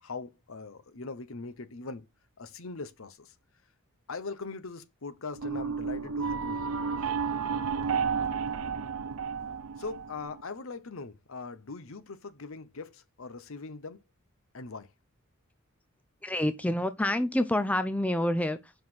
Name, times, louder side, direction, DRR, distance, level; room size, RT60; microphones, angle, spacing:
voice 1, 0.0-2.1 2.4-3.3 4.1-6.8 9.8-14.0 14.5-14.9, left 4 dB, 65° left, 0.9 m, -41 dB
sound 1, 5.3-10.4, right 6 dB, 80° right, 0.8 m, -32 dB
voice 2, 16.2-18.7, left 1 dB, 5° left, 0.4 m, -28 dB
5.7 x 4.8 x 5.6 m
head